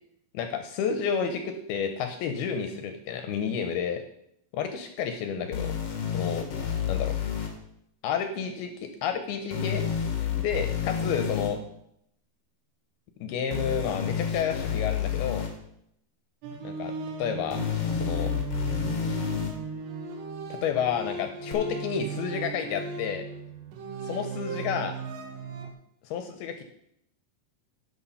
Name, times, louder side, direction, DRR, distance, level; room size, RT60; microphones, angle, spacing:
voice 1, 0.3-4.0 4.5-5.8 6.1-6.4 6.9-7.2 8.0-9.8 10.3-11.6 13.2-15.5 16.6-16.9 17.2-17.6 17.9-18.3 20.5-23.2 24.0-25.0 26.0-26.6, left 7 dB, 75° left, 7 dB, 2.4 m, -30 dB
sound 1, 5.5-7.5 9.5-11.5 13.5-15.5 17.5-19.5 21.5-21.6, left 8 dB, 60° left, 1.7 m, -29 dB
sound 2, 16.4-25.7, right 5 dB, 80° right, 3.2 m, -37 dB
11.0 x 6.4 x 5.5 m, 0.73 s
omnidirectional pair, 4.9 m